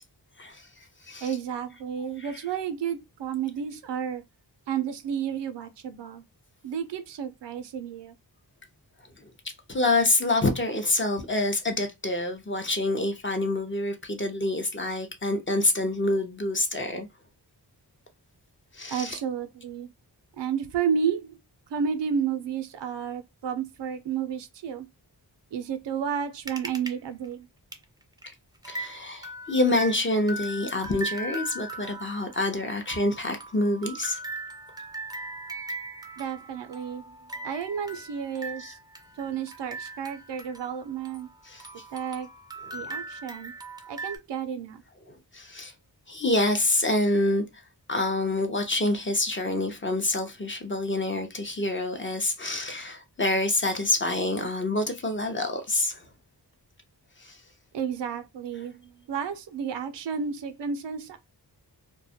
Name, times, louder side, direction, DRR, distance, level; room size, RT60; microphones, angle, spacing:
voice 1, 0.4-1.3 2.2-2.3 9.2-9.3 9.7-17.1 18.7-19.2 28.6-34.2 38.6-38.7 41.5-41.7 42.7-42.9 45.1-45.7 46.1-47.4 47.9-56.0 57.2-57.4, left 2 dB, 30° left, 0.6 m, -27 dB
voice 2, 1.2-4.2 4.7-6.2 6.6-8.1 18.9-19.9 20.4-21.4 21.7-24.9 25.5-27.5 36.2-37.2 37.4-38.8 39.2-41.3 41.9-42.3 42.7-43.5 43.9-44.8 57.7-61.2, right 7 dB, 80° right, 0.5 m, -31 dB
sound 1, 26.5-26.9 27.2-27.3 27.7-27.8 28.2-28.3 28.6-41.3 41.6-44.2, right 1 dB, 10° right, 0.4 m, -39 dB
2.2 x 2.1 x 2.7 m
wide cardioid pair, 65°, 42 cm